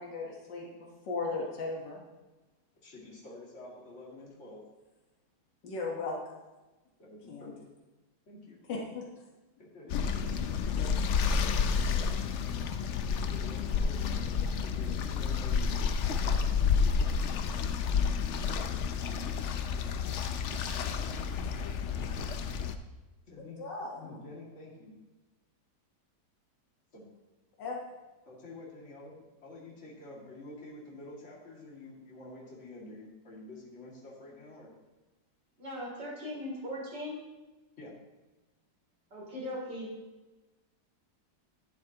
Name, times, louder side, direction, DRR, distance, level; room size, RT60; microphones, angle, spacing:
voice 1, 0.0-2.0 5.6-6.2 7.3-7.5 8.7-9.1 9.9-10.0 23.6-24.2 27.6-27.8, left 3 dB, 90° left, -2 dB, 2.0 m, -37 dB
voice 2, 2.8-4.6 7.0-7.5 8.3-8.6 9.6-10.2 10.7-12.1 13.1-15.9 23.3-23.6 24.0-24.9 26.9-27.0 28.2-34.7 37.8-37.9, left 2 dB, 40° left, -5 dB, 2.6 m, -48 dB
sound 1, 9.9-22.8, left 6 dB, 65° left, 0.7 m, -30 dB
voice 3, 35.6-37.2 39.1-39.9, left 1 dB, 85° right, -4 dB, 3.9 m, -39 dB
11.0 x 11.0 x 2.9 m, 1.1 s
omnidirectional pair, 1.9 m